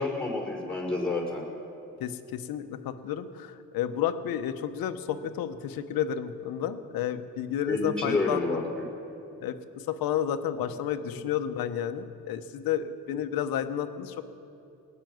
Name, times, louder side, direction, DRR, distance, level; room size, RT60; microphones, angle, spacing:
voice 1, 0.0-1.4 7.7-8.9, left 2 dB, 5° left, -5 dB, 4.4 m, -29 dB
voice 2, 2.0-8.6 9.4-14.2, left 9 dB, 90° left, 9 dB, 0.9 m, -31 dB
18.5 x 6.8 x 9.3 m, 2.8 s
cardioid pair, 105°, 34 cm